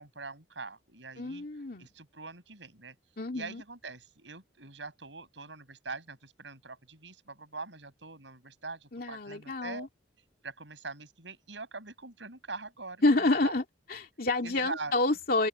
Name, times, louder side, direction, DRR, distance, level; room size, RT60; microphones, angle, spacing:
voice 1, 0.0-1.4 1.8-3.0 3.3-9.9 10.4-13.0 13.4-13.5 14.4-14.9, right 3 dB, 75° right, 6.9 m, -43 dB
voice 2, 1.2-1.9 3.2-3.6 8.9-9.9 13.0-13.6 13.9-15.5, left 2 dB, 50° left, 2.5 m, -28 dB
open air
head